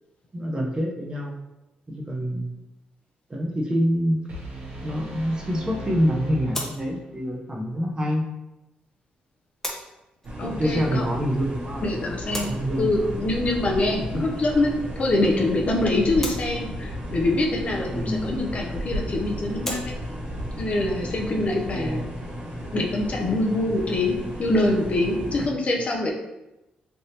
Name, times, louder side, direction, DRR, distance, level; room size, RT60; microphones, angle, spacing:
voice 1, 0.3-1.4 1.9-2.5 3.3-4.3 4.8-8.2 10.4-11.9 12.4-13.1 14.1-14.3 17.9-18.4 21.7-22.0 25.4-25.8, equal, 25° right, -1 dB, 0.7 m, -26 dB
sound 1, 4.0-23.3, left 1 dB, 10° left, 0.7 m, -42 dB
sound 2, 4.3-7.3, right 1 dB, 75° right, 1.5 m, -38 dB
sound 3, 10.2-25.5, equal, 50° right, 1.5 m, -34 dB
voice 2, 10.4-11.1 11.8-20.0 20.6-22.1 22.7-26.1, left 2 dB, 45° left, 0 dB, 0.6 m, -25 dB
3.4 x 2.7 x 2.7 m, 0.96 s
cardioid pair, 80°, 3 cm